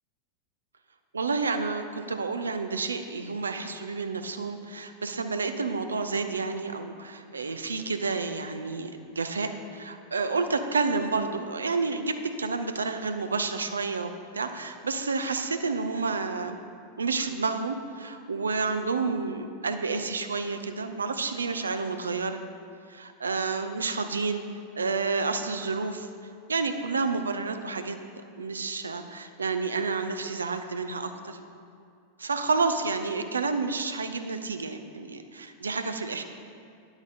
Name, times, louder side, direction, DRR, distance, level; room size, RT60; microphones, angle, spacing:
voice 1, 1.1-16.6 17.0-22.4 22.9-24.4 24.8-26.1 26.5-28.0 28.3-31.4 32.2-36.2, right 4 dB, 75° right, 8 dB, 0.5 m, -30 dB
9.8 x 8.0 x 4.1 m, 2.3 s
figure-of-eight pair, 90°, 0 cm